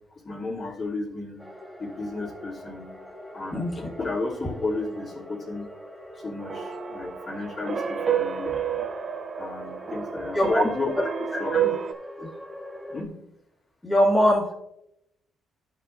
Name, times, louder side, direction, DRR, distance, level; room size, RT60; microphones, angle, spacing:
voice 1, 0.2-1.4 1.8-2.9 3.3-5.7 6.1-8.6 9.4-10.9 11.4-11.6 12.9-13.2, left 3 dB, 45° left, -6 dB, 2.7 m, -32 dB
sound 1, 1.4-13.0, equal, ahead, 1.3 m, -42 dB
sound 2, 6.4-11.9, right 8 dB, 45° right, 0.5 m, -30 dB
voice 2, 10.3-10.7 11.5-11.7 12.2-12.3 13.8-14.5, equal, 15° left, -5 dB, 1.9 m, -22 dB
12.0 x 5.6 x 2.5 m, 0.81 s
cardioid pair, 90°, 0 cm